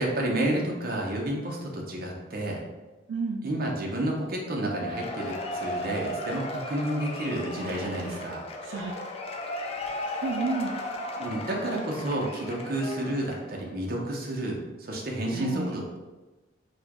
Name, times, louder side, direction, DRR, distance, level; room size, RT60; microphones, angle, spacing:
voice 1, 0.0-2.6 3.4-8.4 11.2-16.0, right 1 dB, 50° right, -1 dB, 0.7 m, -30 dB
voice 2, 3.1-3.4 7.6-8.3 8.6-8.9 10.2-10.7 15.3-15.8, right 3 dB, 85° right, 2 dB, 0.3 m, -32 dB
Cheering / Applause / Crowd, 4.6-13.6, left 1 dB, 30° left, 0.3 m, -35 dB
4.1 x 2.3 x 2.9 m, 1.2 s
head